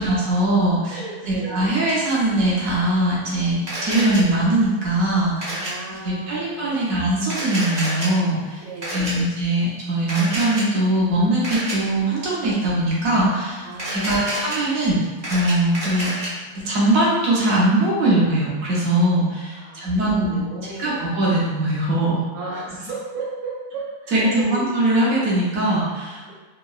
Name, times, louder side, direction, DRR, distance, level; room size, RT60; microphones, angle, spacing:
voice 1, 0.0-1.0 1.3-5.6 5.9-8.6 8.9-15.0 15.3-16.1 16.5-20.4 20.8-22.2 24.1-26.3, right 1 dB, 65° right, -6 dB, 0.8 m, -21 dB
voice 2, 0.8-1.8 5.4-7.0 8.6-9.3 13.6-14.5 19.5-21.1 22.3-24.7, right 3 dB, 80° right, -6 dB, 1.5 m, -35 dB
Camera, 3.7-4.2 5.4-5.7 7.2-8.1 8.8-9.1 10.1-10.6 11.4-11.7 13.7-14.6 15.0-16.3, right 1 dB, 35° right, 0.8 m, -28 dB
3.6 x 2.0 x 2.3 m, 1.4 s
omnidirectional pair, 2.3 m